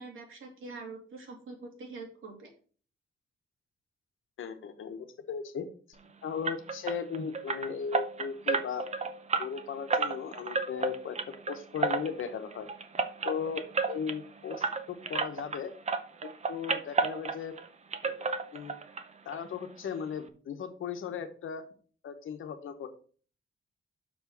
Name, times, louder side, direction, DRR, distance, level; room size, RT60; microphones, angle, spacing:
voice 1, 0.0-2.5, right 3 dB, 80° right, 2 dB, 2.4 m, -44 dB
voice 2, 4.4-5.7 6.2-8.9 9.4-11.2 11.5-12.7 13.2-15.7 16.2-17.5 18.0-18.2 18.5-18.8 19.2-21.7 22.0-22.9, left 7 dB, 80° left, 8 dB, 1.1 m, -37 dB
sound 1, 6.4-15.6 15.9-17.7 17.9-19.0 19.3-19.4 19.8-19.9 20.3-20.4, right 4 dB, 35° right, 0.7 m, -32 dB
6.1 x 4.9 x 5.9 m, 0.43 s
wide cardioid pair, 165°, 21 cm